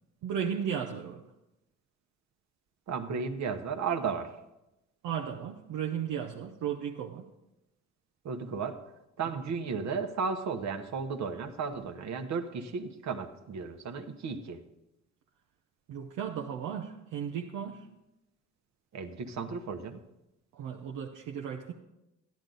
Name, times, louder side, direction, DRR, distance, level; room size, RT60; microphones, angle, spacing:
voice 1, 0.2-1.2 5.0-7.3 15.9-17.9 20.5-21.7, right 8 dB, 90° right, 1 dB, 0.9 m, -35 dB
voice 2, 2.9-4.3 8.2-8.8 9.2-14.6 18.9-20.0, right 5 dB, 65° right, 6 dB, 1.2 m, -34 dB
12.5 x 10.5 x 4.0 m, 0.93 s
cardioid pair, 90°, 30 cm